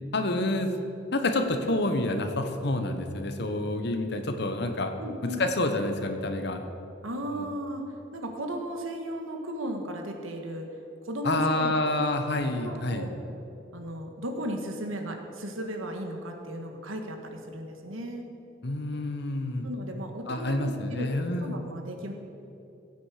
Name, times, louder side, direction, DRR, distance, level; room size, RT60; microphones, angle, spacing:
voice 1, 0.1-0.7 1.1-4.9 5.2-6.6 7.3-7.5 11.2-13.1 18.6-19.7 20.3-21.6, left 2 dB, 55° left, 6 dB, 1.1 m, -28 dB
voice 2, 5.0-5.4 7.0-7.8 8.1-10.7 11.0-11.9 12.6-13.1 13.7-18.3 19.6-21.1 21.4-22.1, equal, 90° right, 3 dB, 1.5 m, -35 dB
16.5 x 8.4 x 5.0 m, 2.9 s
head